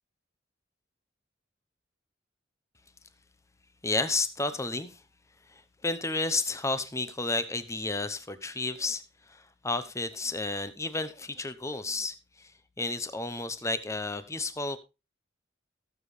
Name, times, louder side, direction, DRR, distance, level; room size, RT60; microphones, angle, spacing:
voice 1, 3.8-5.0 5.5-12.5 12.8-14.8, left 3 dB, 15° left, 0.8 m, -32 dB
17.0 x 7.2 x 3.3 m
head